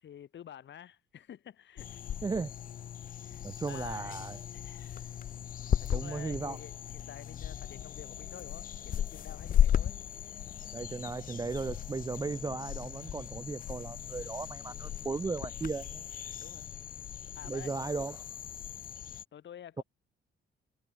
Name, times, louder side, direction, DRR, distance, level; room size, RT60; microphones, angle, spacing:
voice 1, 0.0-2.4 3.0-5.2 5.8-10.0 16.4-16.7 17.3-17.8 19.3-19.8, left 10 dB, 65° left, 7.4 m, -50 dB
sound 1, 1.8-19.2, left 10 dB, 45° left, 0.4 m, -36 dB
voice 2, 3.4-4.4 5.9-6.6 10.7-16.0 17.5-18.2, right 4 dB, 20° right, 0.4 m, -36 dB
cardioid pair, 90°, 20 cm